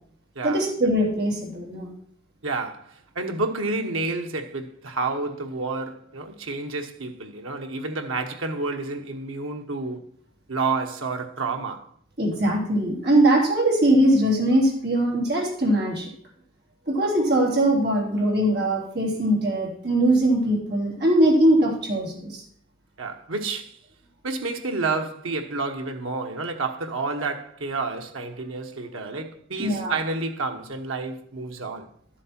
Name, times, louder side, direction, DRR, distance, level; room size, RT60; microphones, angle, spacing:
voice 1, 0.4-1.9 12.2-16.1 16.9-22.4 29.6-29.9, right 1 dB, 50° right, 3.1 m, -21 dB
voice 2, 2.4-10.0 10.5-11.9 23.0-23.8 24.2-31.9, right 3 dB, 85° right, 1.1 m, -30 dB
12.0 x 7.6 x 4.4 m
head